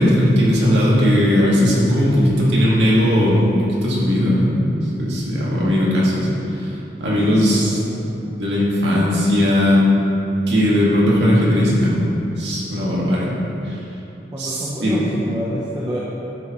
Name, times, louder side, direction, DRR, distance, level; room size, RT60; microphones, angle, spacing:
voice 1, 0.0-3.5 3.8-4.6 5.0-8.0 8.4-9.9 10.5-11.9 12.4-13.3 13.7-13.8 14.4-15.0, equal, 75° right, -6 dB, 2.1 m, -17 dB
voice 2, 7.0-8.2 14.3-16.0, equal, 20° right, -6 dB, 0.9 m, -29 dB
12.0 x 7.9 x 3.1 m, 2.9 s
head